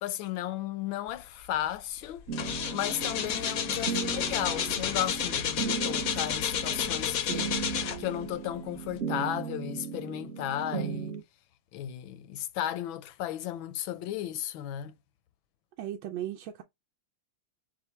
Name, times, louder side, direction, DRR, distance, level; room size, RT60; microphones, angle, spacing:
voice 1, 0.0-2.3 2.7-7.5 8.0-11.2 11.7-14.9, left 12 dB, 80° left, 1.4 m, -34 dB
sound 1, 1.5-1.7 2.0-8.3 8.9-9.0, left 9 dB, 65° left, 0.9 m, -31 dB
sound 2, 2.3-11.2, right 6 dB, 50° right, 0.9 m, -37 dB
voice 2, 15.8-16.6, right 11 dB, 90° right, 1.5 m, -36 dB
5.7 x 2.2 x 3.2 m
omnidirectional pair, 2.1 m